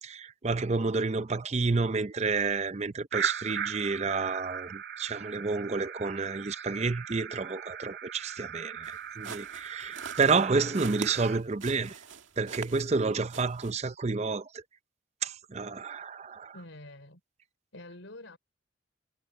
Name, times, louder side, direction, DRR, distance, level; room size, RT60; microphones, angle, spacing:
voice 1, 0.0-12.0 12.4-14.6 15.2-16.5, right 4 dB, 35° right, 0.6 m, -30 dB
sound 1, 3.1-11.4, right 8 dB, 55° right, 3.0 m, -38 dB
sound 2, 8.8-13.0 13.3-13.7, right 5 dB, 80° right, 2.0 m, -44 dB
voice 2, 16.5-17.2 17.7-18.4, left 1 dB, 80° left, 4.4 m, -46 dB
head